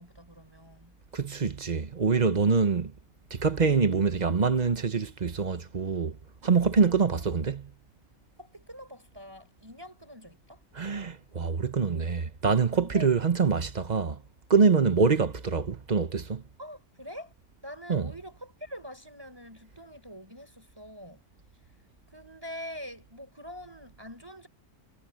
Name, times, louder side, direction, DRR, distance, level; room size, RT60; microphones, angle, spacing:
voice 1, 0.0-1.0 6.7-7.4 8.4-10.6 12.8-13.2 13.8-13.9 16.6-17.3 17.6-21.2 22.1-24.5, equal, 15° right, 5.2 m, -45 dB
voice 2, 1.1-2.9 3.3-6.2 6.4-7.6 10.7-14.2 14.5-16.4 17.9-18.1, right 5 dB, 35° right, 0.9 m, -25 dB
omnidirectional pair, 1.6 m